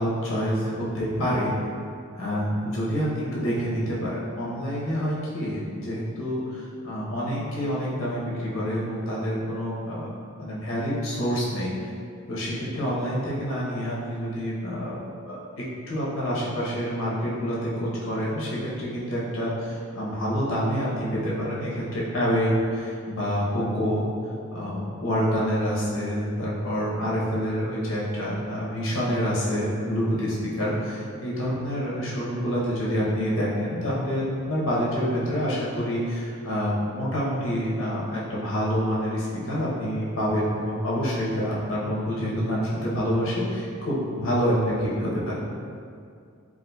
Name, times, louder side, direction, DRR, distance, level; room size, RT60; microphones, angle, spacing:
voice 1, 0.0-1.5 2.1-10.1 10.4-11.7 12.3-15.0 15.3-24.0 24.5-45.3, equal, 65° left, -6 dB, 0.7 m, -27 dB
3.9 x 2.4 x 2.2 m, 2.3 s
head